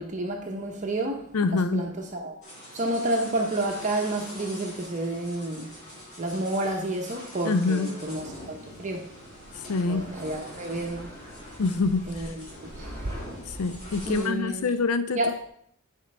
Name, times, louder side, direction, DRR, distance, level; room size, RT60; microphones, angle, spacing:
voice 1, 0.0-2.4 2.7-9.1 9.9-11.1 12.1-13.1 14.0-14.6 15.1-15.3, right 1 dB, 35° right, 2 dB, 0.8 m, -30 dB
voice 2, 1.3-1.8 7.4-7.9 9.7-10.0 11.6-12.0 13.5-15.2, left 4 dB, 80° left, 11 dB, 0.5 m, -25 dB
sound 1, 2.4-14.3, left 1 dB, 35° left, 2.2 m, -45 dB
sound 2, 8.0-14.2, equal, 15° left, 2.7 m, -43 dB
10.0 x 4.4 x 3.3 m, 0.67 s
head